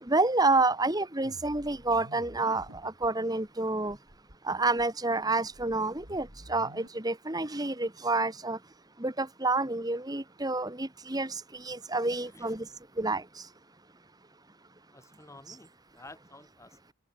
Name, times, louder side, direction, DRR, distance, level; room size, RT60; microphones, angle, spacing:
voice 1, 0.0-4.0 4.4-8.6 9.0-12.7 13.0-13.5 15.5-15.6, right 2 dB, 20° right, 1.6 m, -29 dB
sound 1, 1.2-3.1 3.5-3.6 3.8-4.4 4.8-6.9, equal, 70° right, 7.2 m, -50 dB
voice 2, 12.2-12.5 14.9-16.9, left 2 dB, 15° left, 2.1 m, -52 dB
head